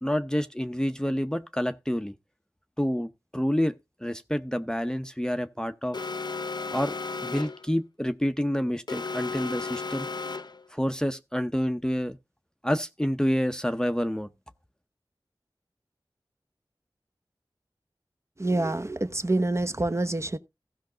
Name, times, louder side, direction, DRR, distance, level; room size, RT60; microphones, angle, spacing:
voice 1, 0.0-2.1 2.8-3.7 4.0-6.0 6.7-7.0 7.2-10.1 10.7-12.2 12.6-14.3, equal, 10° left, 0.8 m, -28 dB
Alarm, 5.9-7.7 8.9-10.7, left 4 dB, 55° left, 0.7 m, -34 dB
voice 2, 18.4-20.4, right 2 dB, 30° right, 0.9 m, -26 dB
15.5 x 5.8 x 3.9 m
wide cardioid pair, 50°, 9 cm